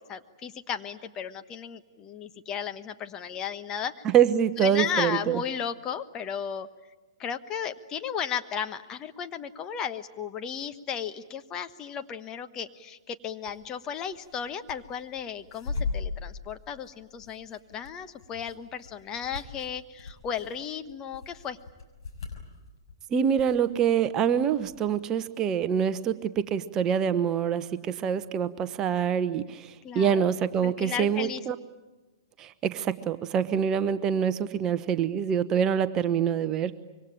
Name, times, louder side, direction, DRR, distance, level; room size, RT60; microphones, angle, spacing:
voice 1, 0.0-3.9 4.6-6.7 7.2-21.6 29.8-30.3 30.6-31.4, left 8 dB, 25° left, 8 dB, 1.2 m, -35 dB
voice 2, 4.0-5.4 23.1-31.6 32.4-36.8, right 8 dB, 25° right, 12 dB, 1.0 m, -25 dB
sound 1, 13.5-13.6 13.9-14.8 15.1-22.9 23.4-24.1 24.4-24.8, left 4 dB, 65° left, 6.3 m, -38 dB
25.5 x 24.0 x 8.9 m, 1.2 s
figure-of-eight pair, 120°, 2 cm